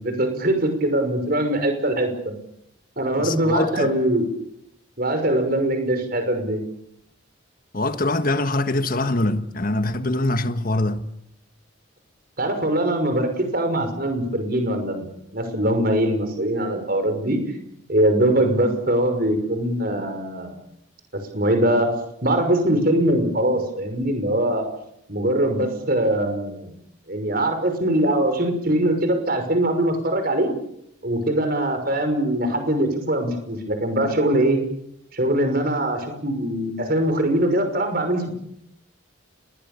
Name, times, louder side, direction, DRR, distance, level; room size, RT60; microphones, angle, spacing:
voice 1, 0.0-2.3 3.0-4.3 5.0-6.6 12.4-17.6 17.9-20.6 21.1-21.9 22.2-24.7 25.1-26.7 27.1-30.5 31.0-34.6 35.1-38.3, right 1 dB, 45° right, 6.0 m, -22 dB
voice 2, 3.2-3.9 7.7-11.0, left 2 dB, 45° left, 1.6 m, -23 dB
29.0 x 22.0 x 7.0 m
head